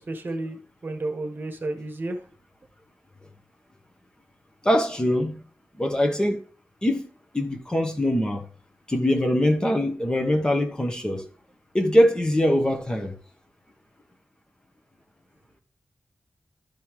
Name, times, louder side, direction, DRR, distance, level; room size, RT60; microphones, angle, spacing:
voice 1, 0.0-2.2, right 2 dB, 45° right, 1.4 m, -32 dB
voice 2, 4.6-5.4 5.8-6.4 6.8-7.1 7.3-8.4 8.9-11.2 11.7-13.2, left 1 dB, 15° left, 1.2 m, -22 dB
12.0 x 5.6 x 3.2 m
wide cardioid pair, 115°, 5 cm